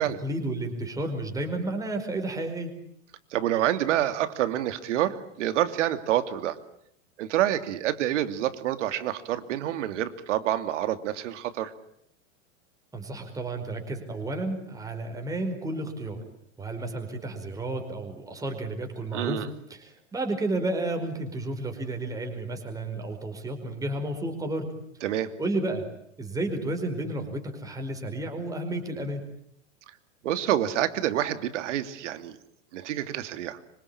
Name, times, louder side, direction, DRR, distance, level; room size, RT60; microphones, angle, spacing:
voice 1, 0.0-2.7 12.9-16.2 16.6-19.4 19.7-24.7 25.4-25.9 26.2-29.2, right 2 dB, 10° right, 4 dB, 4.9 m, -32 dB
voice 2, 3.3-6.6 7.2-11.7 19.1-19.5 25.0-25.4 30.2-32.4 32.7-33.6, right 12 dB, 75° right, 11 dB, 2.9 m, -27 dB
26.5 x 25.5 x 8.7 m, 0.70 s
supercardioid pair, 155°, 37 cm